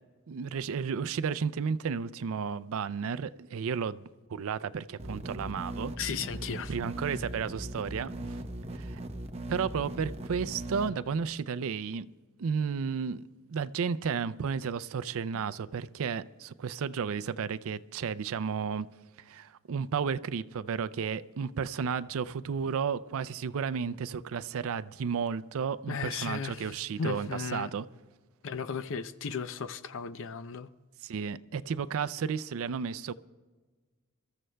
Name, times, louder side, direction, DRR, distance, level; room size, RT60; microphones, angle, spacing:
voice 1, 0.3-5.9 6.7-8.4 8.8-9.0 9.5-12.1 12.4-18.9 19.3-27.8 31.0-33.1, right 6 dB, 65° right, 0.4 m, -33 dB
sound 1, 5.0-10.9, right 1 dB, 30° right, 0.8 m, -39 dB
voice 2, 6.0-6.7 25.9-27.7 28.4-30.7, left 5 dB, 60° left, 0.6 m, -35 dB
29.0 x 14.0 x 2.2 m
head